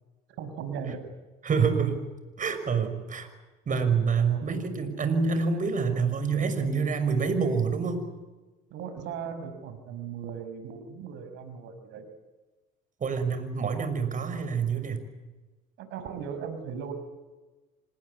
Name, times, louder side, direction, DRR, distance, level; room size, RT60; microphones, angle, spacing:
voice 1, 0.4-1.0 4.2-4.5 8.7-12.1 15.8-16.9, right 7 dB, 70° right, 9 dB, 5.5 m, -38 dB
voice 2, 1.4-2.0 2.4-3.3 3.7-8.1 13.0-15.0, right 5 dB, 40° right, 9 dB, 6.2 m, -27 dB
27.0 x 20.0 x 9.8 m, 1.2 s
supercardioid pair, 75°, 20 cm